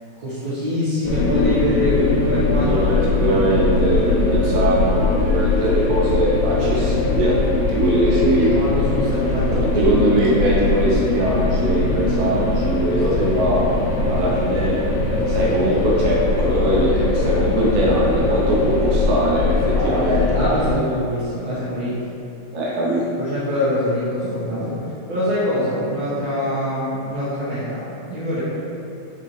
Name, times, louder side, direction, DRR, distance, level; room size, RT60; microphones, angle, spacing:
voice 1, 0.2-2.8 8.1-9.9 12.9-13.4 14.0-14.3 15.0-15.5 19.7-22.0 23.2-28.4, equal, 70° right, -12 dB, 1.1 m, -24 dB
sound 1, 1.0-20.7, left 3 dB, 90° left, 2.1 m, -21 dB
voice 2, 2.6-8.5 9.7-13.7 14.1-14.8 15.3-20.2 22.5-23.1, right 1 dB, 85° right, -4 dB, 1.3 m, -21 dB
6.9 x 2.5 x 3.0 m, 3.0 s
omnidirectional pair, 3.4 m